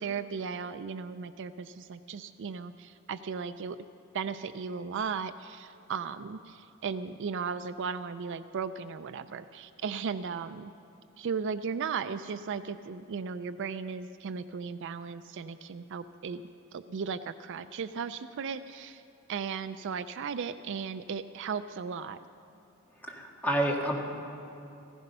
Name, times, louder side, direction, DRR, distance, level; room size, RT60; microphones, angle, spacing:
voice 1, 0.0-3.8 4.1-10.7 11.2-16.4 16.7-19.0 19.3-22.2, right 6 dB, 60° right, 12 dB, 0.4 m, -36 dB
voice 2, 23.1-24.0, right 1 dB, 10° left, -1 dB, 1.8 m, -29 dB
15.5 x 15.5 x 5.5 m, 2.8 s
head